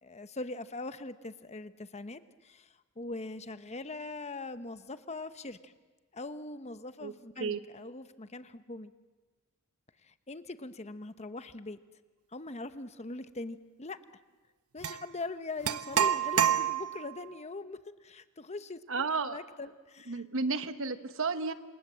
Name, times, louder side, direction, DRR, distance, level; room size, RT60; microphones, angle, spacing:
voice 1, 0.0-5.7 6.1-8.9 10.0-11.8 12.3-14.0 14.7-20.2, left 2 dB, 30° left, 11 dB, 1.0 m, -42 dB
sound 1, 14.8-15.0 15.6-17.1, right 9 dB, 80° right, 1.1 m, -28 dB
voice 2, 18.9-19.4 20.1-21.5, right 4 dB, 60° right, 11 dB, 1.3 m, -32 dB
28.0 x 27.0 x 7.6 m, 1.3 s
head